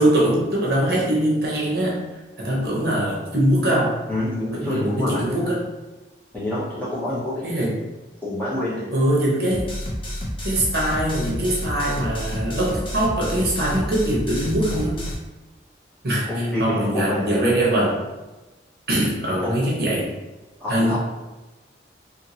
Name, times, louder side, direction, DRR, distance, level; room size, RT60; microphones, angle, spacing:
voice 1, 0.0-2.0 2.4-4.0 4.5-5.6 7.4-7.8 8.9-9.7 10.4-15.0 16.0-18.0 18.9-20.1 20.7-21.0, right 1 dB, 55° right, -5 dB, 0.8 m, -22 dB
voice 2, 4.1-5.3 6.3-7.5 8.2-8.9 16.2-17.3 19.4-19.5 20.6-21.0, left 1 dB, 10° left, -10 dB, 1.0 m, -27 dB
sound 1, 9.5-15.1, equal, 30° left, 0.5 m, -30 dB
2.8 x 2.7 x 2.8 m, 1.1 s
head